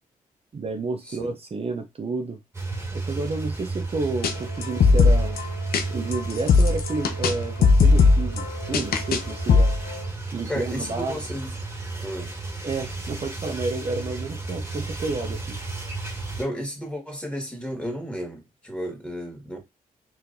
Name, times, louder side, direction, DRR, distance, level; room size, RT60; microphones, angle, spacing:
voice 1, 0.5-2.4 2.9-5.4 5.9-9.7 10.3-11.2 12.6-15.6, right 3 dB, 40° right, 0.6 m, -30 dB
sound 1, 2.5-16.4, right 3 dB, 15° right, 1.6 m, -33 dB
sound 2, 4.2-4.3 4.6-5.8 6.1-7.4 7.6-9.2 9.5-10.0, left 4 dB, 80° left, 0.7 m, -19 dB
voice 2, 10.5-11.5 12.0-12.3 16.4-19.6, equal, 5° left, 2.0 m, -33 dB
4.6 x 3.2 x 2.7 m
cardioid pair, 60°, 16 cm